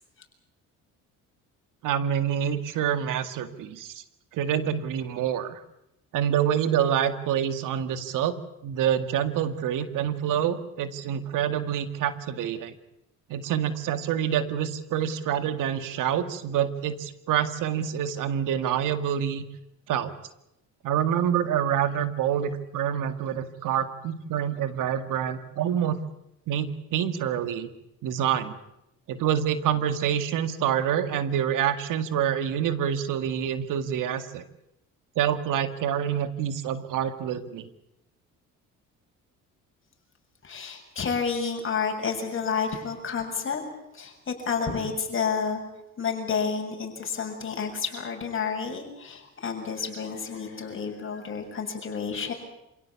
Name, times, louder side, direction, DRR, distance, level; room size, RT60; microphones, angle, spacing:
voice 1, 1.8-4.0 4.3-5.6 6.1-8.4 8.6-12.7 13.3-19.4 19.9-20.1 20.8-26.0 26.5-27.7 28.0-28.6 29.1-34.4 35.2-37.7, right 9 dB, 75° right, 11 dB, 2.0 m, -27 dB
voice 2, 40.4-43.6 43.9-45.6 46.0-52.3, left 6 dB, 40° left, 3 dB, 7.1 m, -30 dB
27.5 x 17.5 x 8.5 m, 0.86 s
cardioid pair, 95°, 32 cm